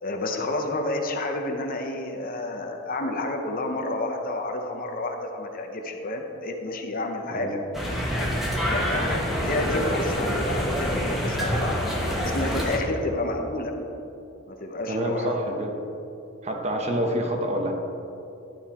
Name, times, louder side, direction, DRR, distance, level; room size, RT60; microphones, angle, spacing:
voice 1, 0.0-7.7 8.1-8.3 8.6-11.8 12.2-13.7 14.5-15.3, left 2 dB, 45° left, 4 dB, 0.8 m, -30 dB
sound 1, 7.7-12.8, equal, ahead, 1.2 m, -26 dB
voice 2, 14.9-15.7 16.4-17.7, equal, 35° right, 2 dB, 1.0 m, -27 dB
11.5 x 5.4 x 4.2 m, 2.7 s
head